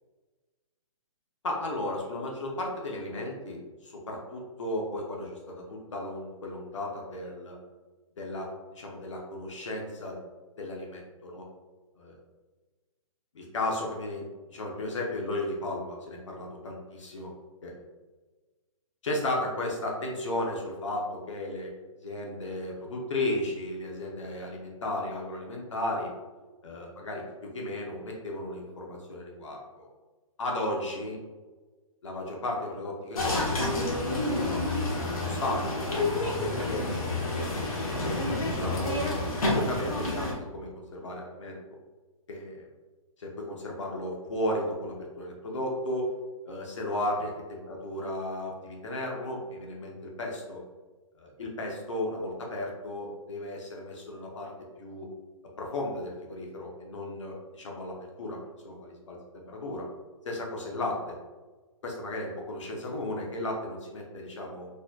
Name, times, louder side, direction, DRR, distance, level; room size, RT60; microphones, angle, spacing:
voice 1, 1.4-7.6 8.2-10.3 10.6-11.4 12.0-12.2 13.3-17.3 17.6-17.7 19.0-21.7 22.0-26.1 26.6-29.9 30.4-31.2 32.0-33.8 34.2-34.8 35.2-37.1 37.3-39.0 39.5-41.6 42.3-42.7 43.2-46.1 46.5-47.3 47.7-50.6 51.2-54.5 54.8-55.1 55.6-58.4 58.6-59.9 60.2-61.2 61.8-64.7, left 1 dB, 55° left, -1 dB, 0.8 m, -35 dB
sound 1, 33.1-40.3, left 2 dB, 85° left, 1.2 m, -29 dB
4.3 x 3.2 x 2.2 m, 1.3 s
hypercardioid pair, 180°, 18 cm